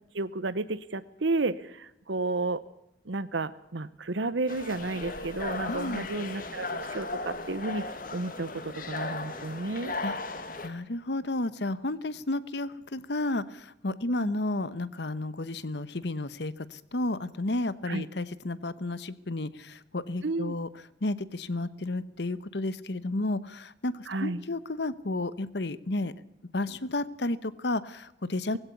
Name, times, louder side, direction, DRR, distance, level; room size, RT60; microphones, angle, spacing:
voice 1, 0.1-2.6 3.1-7.8 8.1-9.9 14.2-14.3 17.9-18.0 20.2-20.6 24.1-24.4, right 3 dB, 85° right, 15 dB, 0.9 m, -32 dB
sound 1, 4.5-10.7, left 3 dB, 50° left, 1.9 m, -36 dB
voice 2, 5.7-6.1 10.0-10.1 10.6-20.7 21.0-23.9 24.2-26.1 26.5-28.6, left 2 dB, 70° left, 17 dB, 1.0 m, -32 dB
19.0 x 16.5 x 8.4 m, 0.82 s
head